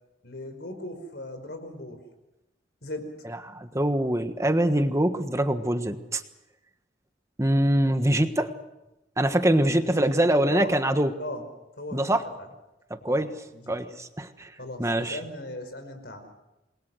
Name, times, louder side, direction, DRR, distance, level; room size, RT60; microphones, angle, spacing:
voice 1, 0.2-2.0 2.8-3.0 9.6-10.1 10.5-10.7 11.2-11.4 11.8-12.5 13.0-13.7 14.6-16.2, left 1 dB, 65° left, 7 dB, 5.0 m, -38 dB
voice 2, 3.2-6.2 7.4-8.5 9.2-11.1 11.9-12.2 13.0-13.3 13.7-14.5 14.8-15.2, right 1 dB, 15° right, 8 dB, 1.4 m, -24 dB
28.0 x 21.5 x 6.4 m, 0.94 s
head